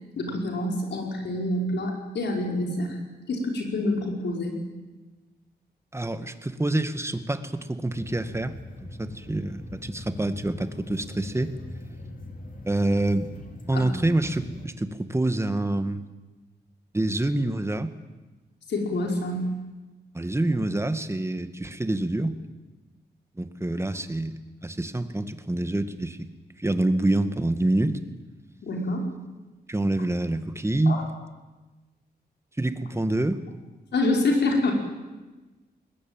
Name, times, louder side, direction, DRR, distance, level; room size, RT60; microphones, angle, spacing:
voice 1, 0.2-3.0 3.3-4.6 13.7-13.9 18.7-19.5 28.6-29.0 30.9-31.0 33.9-34.7, left 2 dB, 85° left, 1 dB, 5.1 m, -26 dB
voice 2, 5.9-8.5 9.0-11.5 12.6-13.3 13.7-16.0 16.9-17.9 20.1-22.4 23.4-26.3 26.6-28.0 29.7-31.0 32.6-33.4, right 2 dB, 15° right, 10 dB, 1.8 m, -26 dB
sound 1, 7.9-14.7, left 1 dB, 50° left, 3.8 m, -41 dB
21.0 x 20.5 x 9.1 m, 1.2 s
cardioid pair, 80°, 18 cm